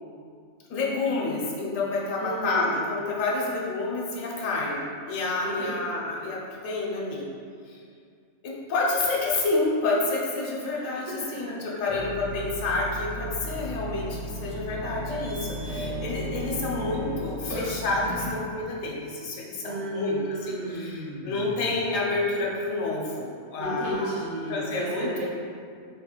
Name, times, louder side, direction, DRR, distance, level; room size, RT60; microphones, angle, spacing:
voice 1, 0.7-7.3 7.7-7.8 8.4-24.1 24.5-25.2, left 3 dB, 85° left, -3 dB, 1.0 m, -29 dB
voice 2, 2.2-2.8 5.4-6.1 10.7-11.2 11.5-11.6 15.7-16.3 19.6-21.7 23.6-25.2, right 1 dB, 90° right, -6 dB, 1.3 m, -34 dB
Burping eructation, 11.9-18.3, equal, 20° left, 1.2 m, -36 dB
Bowed string instrument, 13.6-17.5, equal, 70° right, 1.0 m, -38 dB
4.1 x 2.9 x 2.3 m, 2.3 s
omnidirectional pair, 1.4 m